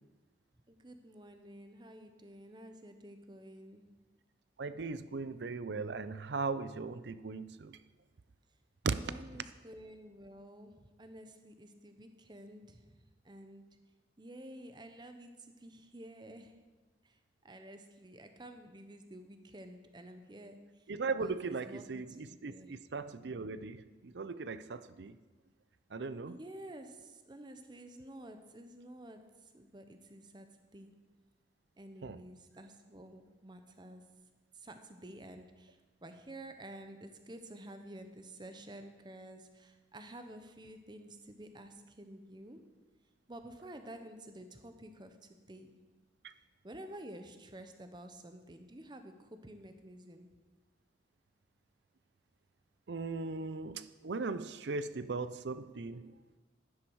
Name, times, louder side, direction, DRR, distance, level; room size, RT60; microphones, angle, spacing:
voice 1, 0.7-3.9 8.9-13.8 14.2-16.6 17.0-17.2 17.4-22.8 26.2-31.0 31.8-34.1 34.5-42.7 43.3-45.8 46.6-50.3, right 1 dB, 25° right, 8 dB, 0.8 m, -51 dB
voice 2, 4.6-7.8 8.8-9.1 20.9-25.1 25.9-26.4 32.0-32.2 46.2-46.3 52.9-56.1, right 4 dB, 75° right, 14 dB, 0.5 m, -38 dB
11.0 x 10.5 x 4.7 m, 1.3 s
head